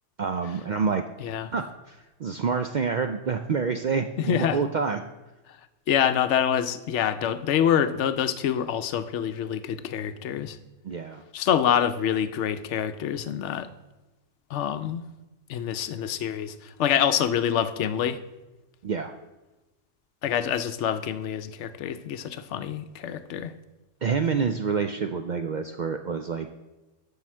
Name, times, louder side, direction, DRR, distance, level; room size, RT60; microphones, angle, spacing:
voice 1, 0.2-1.0 1.5-5.0 10.8-11.2 18.8-19.1 24.0-26.5, right 5 dB, 60° right, 7 dB, 0.5 m, -27 dB
voice 2, 4.2-4.6 5.9-10.6 11.3-13.7 14.5-15.0 15.5-18.2 20.2-23.5, left 9 dB, 75° left, 11 dB, 0.9 m, -26 dB
7.6 x 5.5 x 7.3 m, 1.1 s
omnidirectional pair, 1.3 m